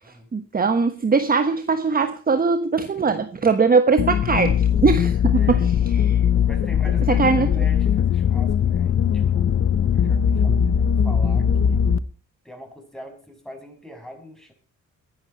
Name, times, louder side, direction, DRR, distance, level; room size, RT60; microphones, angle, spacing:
voice 1, 0.3-5.6 6.1-6.2 7.1-7.5, right 4 dB, 30° right, 9 dB, 1.2 m, -20 dB
sound 1, 4.0-12.0, left 8 dB, 45° left, 0.9 m, -20 dB
voice 2, 5.3-5.7 6.4-9.6 9.9-11.9 12.4-14.5, equal, ahead, 3 dB, 6.5 m, -42 dB
21.5 x 11.5 x 4.2 m, 0.36 s
cardioid pair, 90°, 30 cm